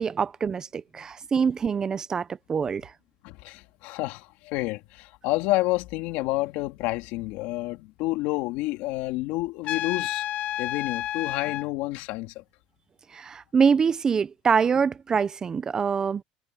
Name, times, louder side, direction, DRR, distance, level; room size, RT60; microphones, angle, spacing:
voice 1, 0.0-2.9 13.1-16.2, right 6 dB, 20° right, 0.5 m, -25 dB
voice 2, 3.2-10.2 10.6-12.4, left 19 dB, 70° left, 2.6 m, -29 dB
Trumpet, 9.6-11.7, left 13 dB, 50° left, 0.5 m, -30 dB
cardioid pair, 150°, 3 cm